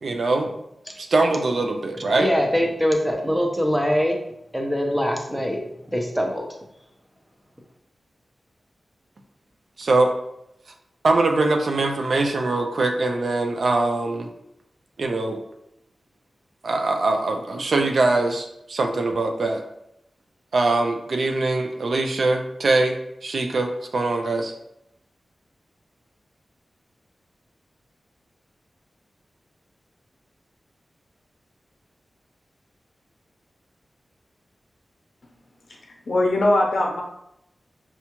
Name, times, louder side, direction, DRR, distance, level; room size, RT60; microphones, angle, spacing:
voice 1, 0.0-0.5 1.0-2.3 9.8-10.1 11.0-14.3 15.0-15.4 16.6-19.6 20.5-23.0 23.2-24.5, right 2 dB, 60° right, 4 dB, 0.4 m, -22 dB
voice 2, 2.2-4.2 4.5-6.6, equal, 5° right, 2 dB, 0.6 m, -23 dB
voice 3, 35.7-37.0, left 1 dB, 60° left, -1 dB, 0.7 m, -21 dB
5.4 x 2.3 x 2.9 m, 0.80 s
wide cardioid pair, 125°, 0 cm